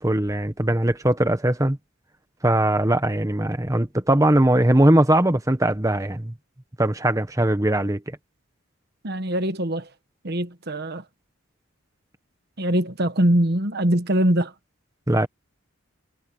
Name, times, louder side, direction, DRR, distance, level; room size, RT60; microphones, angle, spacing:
voice 1, 0.0-1.8 2.4-6.3 6.8-8.0 15.1-15.3, right 1 dB, 15° right, 1.2 m, -20 dB
voice 2, 9.0-9.9 10.2-11.0 12.6-14.5, right 1 dB, 50° right, 1.3 m, -22 dB
head